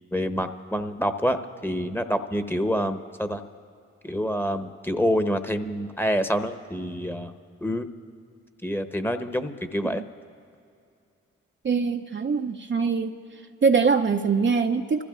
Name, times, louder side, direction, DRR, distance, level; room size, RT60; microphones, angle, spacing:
voice 1, 0.1-3.4 4.0-7.3 7.6-7.9 8.6-10.0, equal, 5° left, 8 dB, 1.0 m, -27 dB
voice 2, 11.6-13.1 13.6-15.0, right 5 dB, 40° right, 5 dB, 0.6 m, -23 dB
26.0 x 15.0 x 2.5 m, 2.5 s
supercardioid pair, 40°, 31 cm